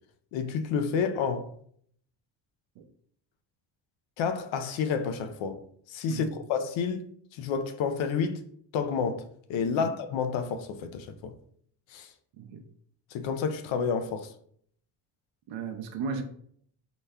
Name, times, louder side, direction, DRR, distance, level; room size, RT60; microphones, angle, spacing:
voice 1, 0.3-1.5 4.2-5.6 5.9-7.1 7.3-8.4 8.7-11.3 11.9-12.1 13.1-14.3, left 6 dB, 85° left, 0.6 m, -30 dB
voice 2, 15.5-16.2, right 5 dB, 80° right, 0.6 m, -35 dB
4.0 x 2.2 x 3.4 m
cardioid pair, 125°, 44 cm